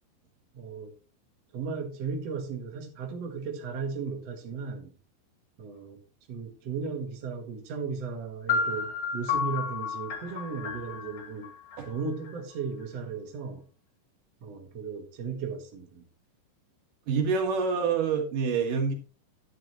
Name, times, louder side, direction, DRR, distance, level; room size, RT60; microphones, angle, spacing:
voice 1, 0.5-0.9 1.5-4.9 5.6-6.0 6.3-11.5 11.8-13.6 14.4-16.0, right 5 dB, 80° right, 2 dB, 1.4 m, -36 dB
sound 1, 8.5-12.3, left 5 dB, 60° left, 1.4 m, -32 dB
voice 2, 17.1-18.9, right 5 dB, 55° right, 2 dB, 2.6 m, -26 dB
11.0 x 10.0 x 3.0 m, 0.37 s
omnidirectional pair, 5.9 m